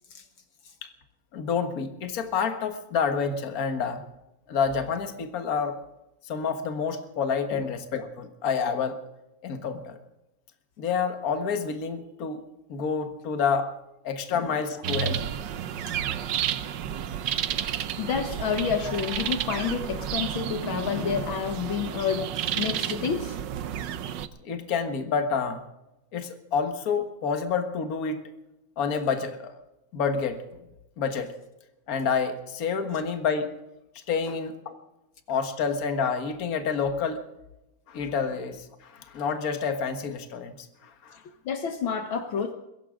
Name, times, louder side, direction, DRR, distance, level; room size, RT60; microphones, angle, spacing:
voice 1, 1.3-4.0 4.5-5.7 6.3-9.0 9.4-10.0 10.8-12.4 12.7-13.7 14.0-15.2 24.4-25.6 26.1-28.2 28.8-29.5 29.9-30.6 31.0-31.3 31.9-33.5 34.1-34.7 35.3-37.2 37.9-40.6 40.8-41.2, left 6 dB, 45° left, 7 dB, 1.8 m, -28 dB
sound 1, 14.8-24.3, right 10 dB, 65° right, 1.3 m, -31 dB
voice 2, 18.0-23.4 34.3-34.4 41.5-42.5, left 7 dB, 70° left, 7 dB, 1.9 m, -29 dB
22.0 x 17.0 x 3.7 m, 0.92 s
omnidirectional pair, 2.4 m